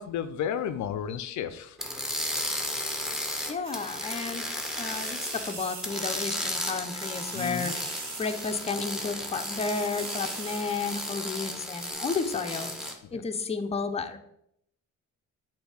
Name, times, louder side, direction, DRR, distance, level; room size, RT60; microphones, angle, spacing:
voice 1, 0.0-1.8 7.3-7.7 13.0-13.2, left 8 dB, 70° left, 11 dB, 0.5 m, -33 dB
sound 1, 1.8-5.5 5.8-12.9, left 1 dB, ahead, 1.0 m, -34 dB
voice 2, 3.5-4.5 4.8-14.2, left 4 dB, 20° left, 6 dB, 0.6 m, -32 dB
sound 2, 3.6-4.2 4.5-6.6 6.9-9.0 9.3-11.4 11.7-11.9, right 3 dB, 60° right, 1.5 m, -41 dB
7.0 x 2.7 x 5.5 m, 0.75 s
cardioid pair, 90°, 30 cm